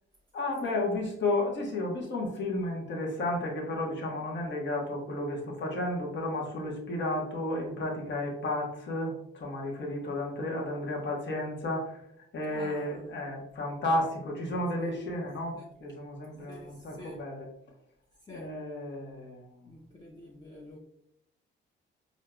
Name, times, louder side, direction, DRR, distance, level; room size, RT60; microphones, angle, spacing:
voice 1, 0.3-12.1 12.3-17.5 18.3-19.7, left 1 dB, 65° left, -1 dB, 1.1 m, -33 dB
voice 2, 12.4-13.1 13.9-14.0 14.8-15.0 15.5-15.7 16.5-17.2 18.2-18.5 19.7-20.8, left 1 dB, 20° left, -2 dB, 0.6 m, -48 dB
4.6 x 2.7 x 2.2 m, 0.76 s
cardioid pair, 90°, 20 cm